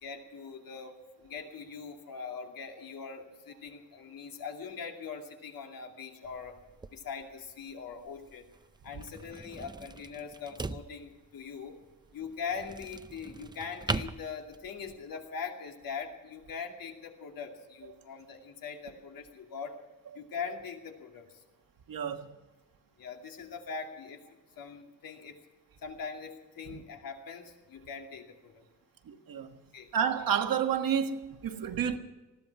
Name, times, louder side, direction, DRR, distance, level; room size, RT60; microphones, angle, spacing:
voice 1, 0.0-6.6 6.9-8.5 8.8-11.8 12.1-19.7 20.1-21.4 23.0-24.2 24.6-25.4 25.8-28.6 29.7-29.9, left 6 dB, 75° left, 2.6 m, -42 dB
sound 1, 6.2-15.0, right 3 dB, 15° right, 0.4 m, -41 dB
voice 2, 21.9-22.3 26.7-26.8 29.1-29.6 29.9-32.0, right 8 dB, 75° right, 1.5 m, -30 dB
20.0 x 15.5 x 4.7 m
wide cardioid pair, 155°, 34 cm